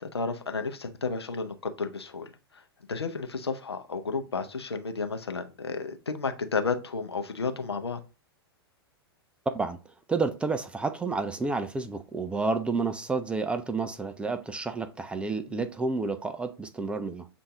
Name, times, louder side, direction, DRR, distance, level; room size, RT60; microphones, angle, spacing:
voice 1, 0.0-2.3 2.9-8.0 15.4-15.7, left 4 dB, 80° left, 0.6 m, -32 dB
voice 2, 9.5-9.8 10.1-17.3, right 3 dB, 10° right, 0.3 m, -30 dB
6.9 x 2.6 x 2.9 m
figure-of-eight pair, 100°, 13 cm